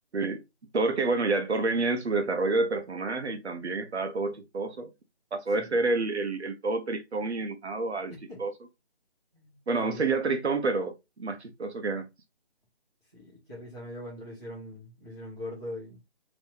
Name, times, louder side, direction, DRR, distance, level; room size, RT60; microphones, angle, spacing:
voice 1, 0.7-4.9 5.3-8.1 8.4-8.5 9.7-10.9 11.2-12.1, right 3 dB, 85° right, 0.9 m, -28 dB
voice 2, 8.1-8.4 9.3-10.1 13.1-16.0, left 1 dB, 15° right, 0.9 m, -42 dB
3.4 x 3.0 x 2.7 m
hypercardioid pair, 180°, 32 cm